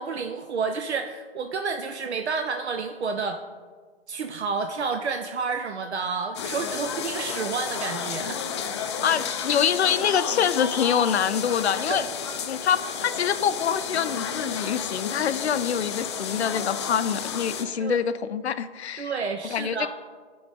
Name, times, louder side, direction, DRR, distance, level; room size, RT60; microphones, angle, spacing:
voice 1, 0.0-3.4 4.1-8.8 11.9-12.1 17.8-18.0 19.0-19.9, right 5 dB, 85° right, 5 dB, 0.6 m, -30 dB
sound 1, 6.3-17.6, left 7 dB, 25° left, 0.4 m, -32 dB
voice 2, 9.0-12.0 12.5-19.1 19.5-19.9, left 8 dB, 75° left, 13 dB, 0.5 m, -25 dB
10.5 x 3.9 x 3.8 m, 1.5 s
figure-of-eight pair, 130°, 32 cm